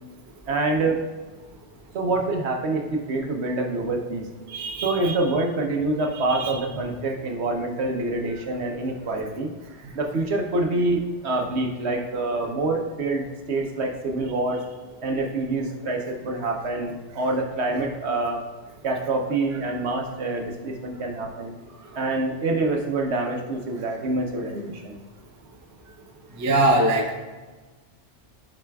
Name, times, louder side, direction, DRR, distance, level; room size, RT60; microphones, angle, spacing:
voice 1, 0.5-1.0 1.9-4.2 4.8-9.5 9.9-14.6 15.0-18.4 18.8-21.5 21.9-25.0, right 2 dB, 65° right, 2 dB, 1.1 m, -26 dB
voice 2, 4.5-5.2 6.1-6.6 9.8-9.9 26.3-27.2, right 1 dB, 20° right, 2 dB, 0.5 m, -23 dB
10.5 x 5.0 x 2.3 m, 1.3 s
omnidirectional pair, 1.2 m